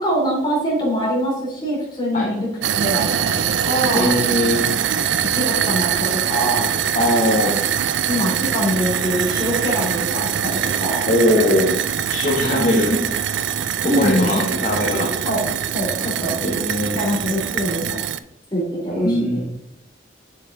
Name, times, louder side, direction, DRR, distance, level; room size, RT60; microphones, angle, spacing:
voice 1, 0.0-2.5 2.8-4.1 4.9-5.0 5.3-6.7 8.1-11.1 13.9-14.4 15.2-15.5 15.7-16.4 16.9-18.0 18.5-19.4, equal, 25° left, -4 dB, 3.2 m, -23 dB
sound 1, 2.6-18.2, right 8 dB, 90° right, 0.4 m, -23 dB
voice 2, 3.9-4.6 6.9-7.6 11.1-11.7 12.1-13.0 13.8-15.2 16.4-17.0 19.0-19.4, left 1 dB, 40° left, -4 dB, 1.3 m, -20 dB
6.8 x 6.7 x 4.0 m, 0.83 s
head